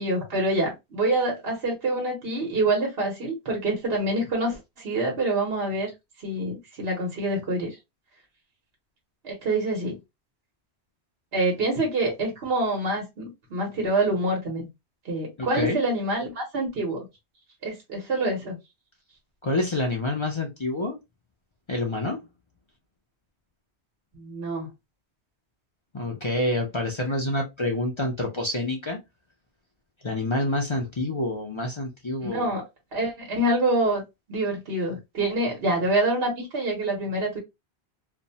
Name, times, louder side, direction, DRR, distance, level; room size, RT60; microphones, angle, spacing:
voice 1, 0.0-5.9 6.2-7.7 9.2-10.0 11.3-14.7 15.0-17.1 17.6-18.6 24.1-24.7 32.2-32.6 32.9-34.0 34.3-37.4, right 2 dB, 65° right, 1.2 m, -26 dB
voice 2, 15.4-15.8 19.4-21.0 21.7-22.2 25.9-29.0 30.0-32.5, left 2 dB, 40° left, 0.4 m, -27 dB
2.6 x 2.1 x 2.6 m
omnidirectional pair, 1.1 m